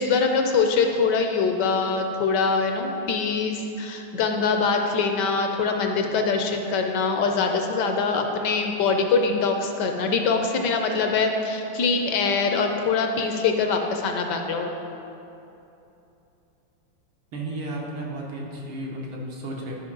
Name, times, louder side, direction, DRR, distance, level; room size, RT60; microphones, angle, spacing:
voice 1, 0.0-14.7, left 4 dB, 70° left, 4 dB, 1.2 m, -23 dB
voice 2, 17.3-19.8, right 1 dB, 90° right, -3 dB, 2.0 m, -33 dB
11.5 x 5.4 x 3.8 m, 2.8 s
omnidirectional pair, 2.1 m